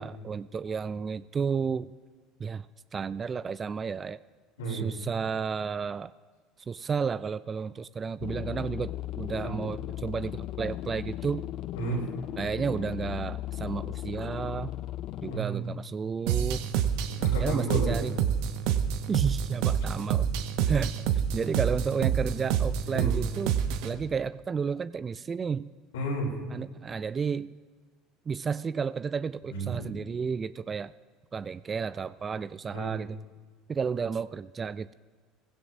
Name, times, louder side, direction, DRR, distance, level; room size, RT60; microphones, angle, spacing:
voice 1, 0.0-1.9 2.4-2.7 2.9-4.2 4.7-6.1 6.7-11.5 12.4-14.7 15.2-16.7 17.4-18.1 19.1-20.3 20.6-23.6 23.8-25.7 26.5-27.6 28.3-30.9 31.3-33.2 33.7-34.9, right 6 dB, 30° right, 16 dB, 0.3 m, -32 dB
voice 2, 4.6-4.9 9.4-9.5 11.7-12.1 15.3-15.6 17.1-18.0 22.9-23.1 25.9-26.3 29.5-29.9 32.7-33.0, right 2 dB, 80° left, -1 dB, 3.3 m, -32 dB
sound 1, 8.2-15.4, left 13 dB, 55° left, 0.4 m, -36 dB
sound 2, 16.3-23.9, right 8 dB, 65° right, 0.8 m, -27 dB
17.0 x 16.0 x 2.7 m, 1.4 s
hypercardioid pair, 75°, 0 cm